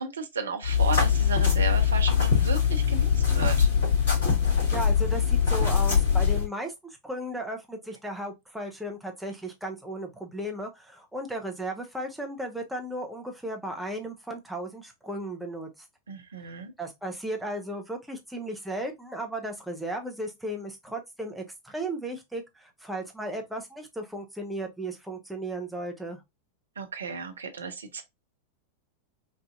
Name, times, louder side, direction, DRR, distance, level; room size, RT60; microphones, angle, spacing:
voice 1, 0.0-3.7 16.1-16.7 26.8-28.0, right 4 dB, 70° right, 0.6 m, -33 dB
sound 1, 0.6-6.4, left 7 dB, 60° left, 2.3 m, -22 dB
voice 2, 4.5-6.7 7.0-15.7 16.8-26.2, right 1 dB, 5° right, 0.8 m, -35 dB
4.1 x 2.5 x 2.4 m
figure-of-eight pair, 90°, 0 cm